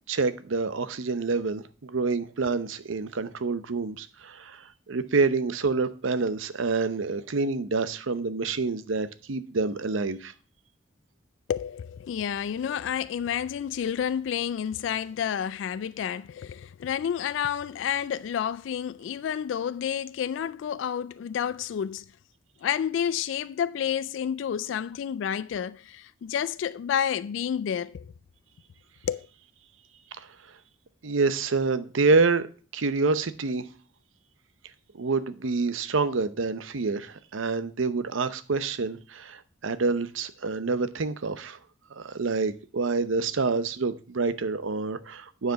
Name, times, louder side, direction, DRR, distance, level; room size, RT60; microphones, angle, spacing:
voice 1, 0.1-10.3 30.2-30.3 31.0-32.5 32.7-33.7 34.9-41.6 41.9-45.5, right 4 dB, 85° right, 0.7 m, -27 dB
voice 2, 11.5-22.0 22.6-28.1 29.0-29.3, left 8 dB, 70° left, 0.3 m, -30 dB
9.2 x 4.9 x 5.6 m
head